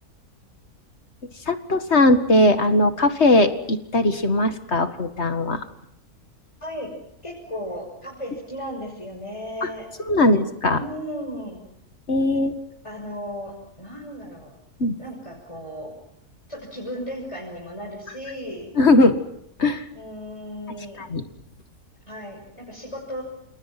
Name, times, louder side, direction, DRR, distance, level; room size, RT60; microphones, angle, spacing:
voice 1, 1.5-5.7 9.6-9.7 10.1-10.8 12.1-12.6 14.8-15.0 18.8-19.2 19.6-19.8 21.0-21.2, left 2 dB, 50° left, 9 dB, 2.1 m, -19 dB
voice 2, 7.2-9.9 10.2-10.4 10.7-11.6 12.8-14.5 15.0-15.9 16.5-18.8 19.9-21.1 22.1-23.2, equal, 20° left, -2 dB, 6.5 m, -35 dB
29.0 x 28.5 x 6.0 m, 0.73 s
omnidirectional pair, 1.5 m